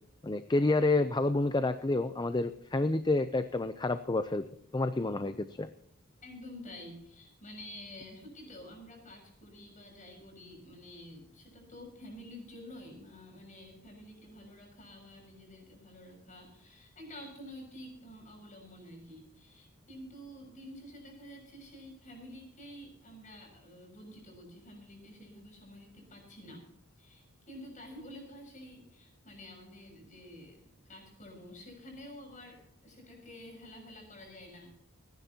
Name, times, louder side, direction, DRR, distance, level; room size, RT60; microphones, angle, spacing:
voice 1, 0.2-4.5 4.7-5.7, left 2 dB, 20° left, 11 dB, 0.5 m, -29 dB
voice 2, 6.2-26.6 27.0-34.7, left 1 dB, 35° left, 2 dB, 6.7 m, -49 dB
27.5 x 10.5 x 2.9 m, 0.72 s
head